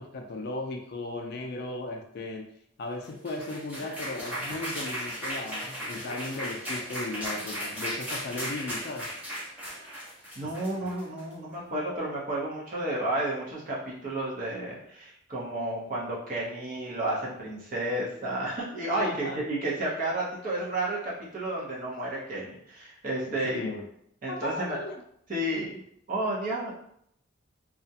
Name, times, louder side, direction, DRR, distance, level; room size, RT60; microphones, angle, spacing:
voice 1, 0.0-2.5 2.8-9.1 19.0-19.4 23.4-23.8 24.3-25.0, left 2 dB, 50° left, 3 dB, 0.3 m, -36 dB
sound 1, 3.0-11.3, equal, 5° right, 0.7 m, -36 dB
voice 2, 10.4-23.7 24.2-24.8 25.3-25.8 26.1-26.7, right 1 dB, 40° right, -5 dB, 0.7 m, -32 dB
2.3 x 2.1 x 2.7 m, 0.70 s
head